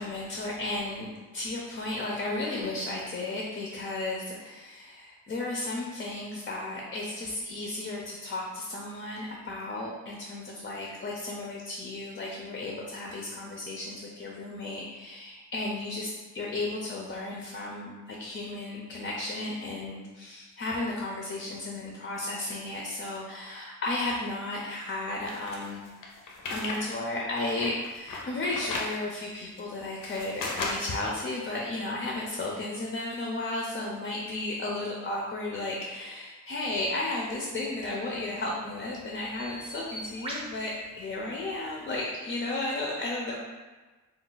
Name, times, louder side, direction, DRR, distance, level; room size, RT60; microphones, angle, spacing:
voice 1, 0.0-25.8 26.5-43.4, left 2 dB, 35° left, -2 dB, 0.4 m, -34 dB
sound 1, 25.3-26.8 27.2-29.0 29.6-31.0, left 3 dB, 85° left, 0.6 m, -35 dB
Bird vocalization bird call bird song, 37.8-42.0, right 1 dB, 20° right, 0.6 m, -44 dB
2.4 x 2.2 x 3.8 m, 1.2 s
wide cardioid pair, 125°, 32 cm